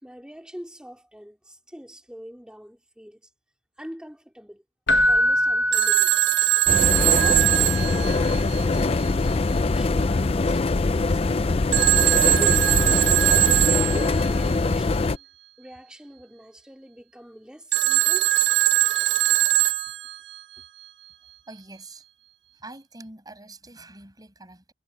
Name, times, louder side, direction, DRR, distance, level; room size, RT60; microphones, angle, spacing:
voice 1, 0.0-3.3 3.8-4.6 5.1-6.1 7.0-11.4 12.2-15.3 15.6-18.5 20.6-20.7, equal, 5° right, 3.1 m, -42 dB
Keyboard (musical), 4.9-6.8 10.1-10.2, left 1 dB, 85° left, 1.1 m, -23 dB
Telephone, 5.7-8.8 11.7-14.3 17.7-20.4, right 17 dB, 85° right, 1.1 m, -21 dB
sound 1, 6.7-15.2, left 3 dB, 35° left, 0.5 m, -23 dB
voice 2, 21.5-22.0 22.5-24.7, right 2 dB, 20° right, 6.4 m, -45 dB
head